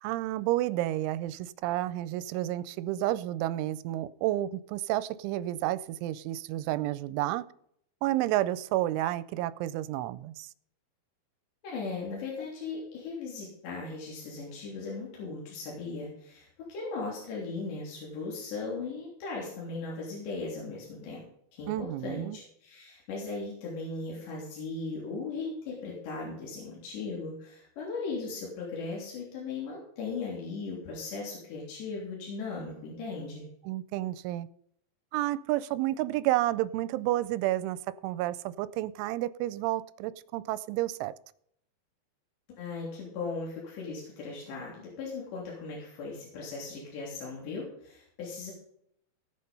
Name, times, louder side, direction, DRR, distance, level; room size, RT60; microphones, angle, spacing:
voice 1, 0.0-7.5 8.0-10.5 21.7-22.4 33.6-34.5 35.1-41.1, right 15 dB, 85° right, 16 dB, 3.0 m, -30 dB
voice 2, 11.6-21.2 21.5-33.5 42.6-48.5, left 4 dB, 65° left, -4 dB, 5.3 m, -38 dB
17.5 x 6.6 x 5.4 m, 0.70 s
omnidirectional pair, 5.4 m